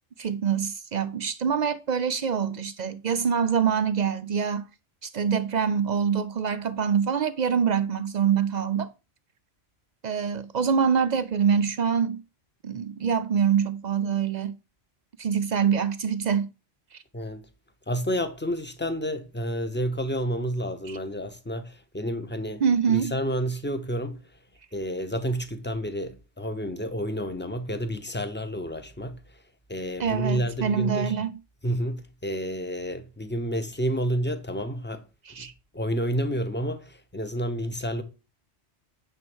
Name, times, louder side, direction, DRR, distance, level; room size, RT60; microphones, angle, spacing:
voice 1, 0.2-4.7 5.0-8.9 10.0-12.2 12.6-14.6 15.2-16.5 16.9-17.0 20.9-21.0 22.6-23.1 30.0-31.4 35.3-35.5, right 7 dB, 65° right, 0.4 m, -25 dB
voice 2, 17.9-22.6 22.9-24.2 24.7-29.2 29.7-31.2 31.6-35.0 35.4-35.5 35.7-38.0, equal, 10° left, 0.7 m, -30 dB
9.6 x 3.8 x 6.2 m
omnidirectional pair, 1.3 m